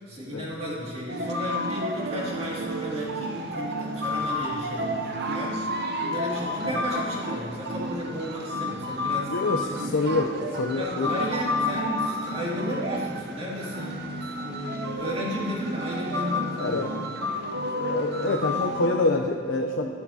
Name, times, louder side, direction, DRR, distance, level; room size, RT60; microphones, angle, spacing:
voice 1, 0.0-5.6 6.1-9.8 10.7-14.1 14.4-16.8, equal, 35° right, -6 dB, 2.4 m, -34 dB
sound 1, 1.1-19.0, left 1 dB, 55° right, 0.7 m, -31 dB
voice 2, 9.3-11.1 16.6-16.9 17.8-20.0, left 2 dB, 85° left, 2 dB, 0.6 m, -26 dB
13.0 x 11.5 x 2.8 m, 2.7 s
head